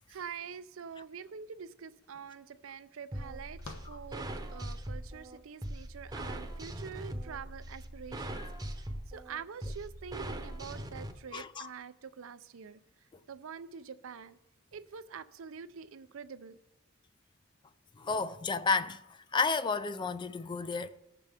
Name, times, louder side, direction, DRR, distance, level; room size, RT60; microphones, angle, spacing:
voice 1, 0.1-4.3 4.5-8.4 9.1-12.8 13.3-14.4 14.7-16.6, right 6 dB, 80° right, 0.5 m, -45 dB
sound 1, 1.5-1.6 1.8-4.9, left 3 dB, 80° left, 1.0 m, -53 dB
sound 2, 3.1-11.1, right 1 dB, 20° right, 0.8 m, -41 dB
voice 2, 11.3-11.7 18.0-19.0 19.3-20.9, left 4 dB, 25° left, 0.4 m, -31 dB
18.5 x 6.8 x 3.5 m
head